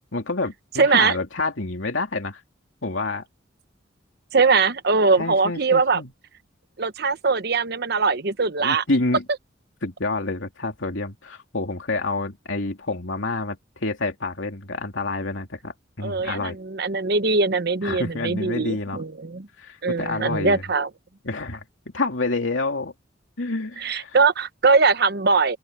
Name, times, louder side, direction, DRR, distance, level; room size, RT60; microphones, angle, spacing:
voice 1, 0.1-2.4 2.8-3.3 5.2-6.1 8.6-9.2 9.8-16.6 17.8-19.0 19.6-20.6 21.2-21.6 21.9-22.9 23.4-24.2, left 2 dB, 85° left, 2.8 m, -28 dB
voice 2, 0.8-1.1 4.3-6.0 6.8-8.8 16.0-19.5 19.8-20.9 23.8-25.6, right 4 dB, 55° right, 1.0 m, -21 dB
open air
head